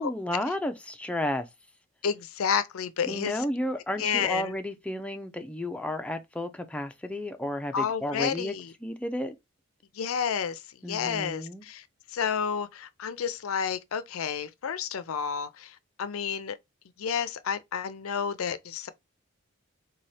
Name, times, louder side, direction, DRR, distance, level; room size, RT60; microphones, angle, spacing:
voice 1, 0.0-1.5 3.1-8.5 8.8-9.4 10.8-11.6, left 1 dB, 5° left, 0.5 m, -32 dB
voice 2, 2.0-3.4 4.0-4.6 7.7-8.7 9.9-10.6 10.9-11.8 12.1-16.6 17.0-18.9, left 7 dB, 80° left, 0.5 m, -30 dB
4.1 x 2.3 x 3.2 m
head